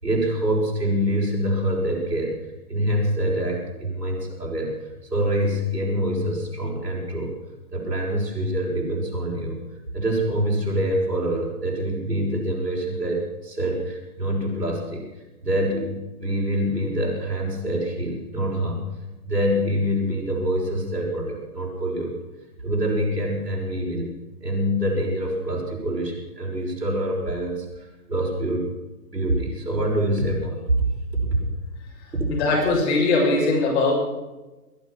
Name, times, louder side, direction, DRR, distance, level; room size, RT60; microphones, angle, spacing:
voice 1, 0.0-2.3 2.7-4.7 5.1-7.3 7.7-9.6 9.9-15.1 15.4-18.8 19.2-22.1 22.6-24.1 24.4-28.7 29.1-30.9 31.1-31.4 32.1-32.3, right 1 dB, 90° right, -2 dB, 6.2 m, -25 dB
voice 2, 32.3-33.9, left 3 dB, 45° left, -1 dB, 7.0 m, -20 dB
20.5 x 11.0 x 6.3 m, 1.1 s
figure-of-eight pair, 130°, 48 cm